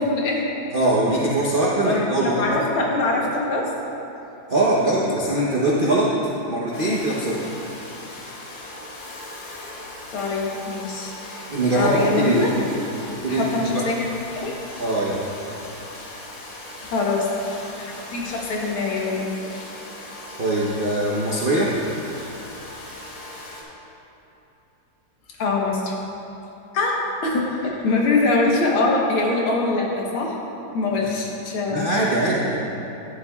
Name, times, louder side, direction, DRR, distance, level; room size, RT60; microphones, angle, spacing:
voice 1, 0.0-0.6 1.8-3.7 10.1-11.5 11.8-12.5 13.3-14.1 14.4-14.5 16.8-17.3 17.8-19.3 25.4-25.9 26.7-30.4 30.7-31.9, left 3 dB, 90° left, -2 dB, 2.0 m, -23 dB
voice 2, 0.7-2.4 4.5-6.1 6.5-7.4 11.5-12.4 13.2-13.4 13.7-13.8 14.8-15.3 20.4-21.7 31.0-31.1 31.7-32.6, right 1 dB, 65° right, -6 dB, 0.5 m, -21 dB
Domestic sounds home sounds, 6.7-23.6, left 2 dB, 50° left, 1.3 m, -39 dB
11.0 x 9.9 x 2.3 m, 2.9 s
omnidirectional pair, 2.3 m